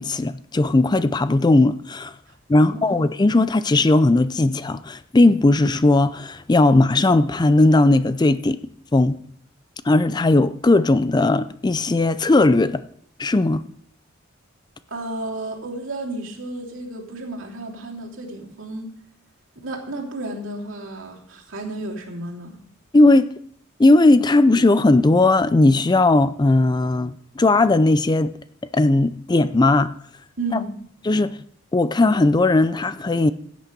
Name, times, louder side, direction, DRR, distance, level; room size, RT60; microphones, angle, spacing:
voice 1, 0.0-2.1 2.5-8.6 8.9-9.2 9.8-12.8 13.2-13.6 22.9-23.3 23.8-28.3 28.7-29.9 30.5-30.6 31.1-31.4 31.7-33.3, left 2 dB, 20° left, 0.4 m, -17 dB
voice 2, 2.5-3.0 14.9-18.9 19.6-22.5 30.4-30.7, right 2 dB, 65° right, 3.1 m, -32 dB
16.0 x 8.4 x 5.2 m
head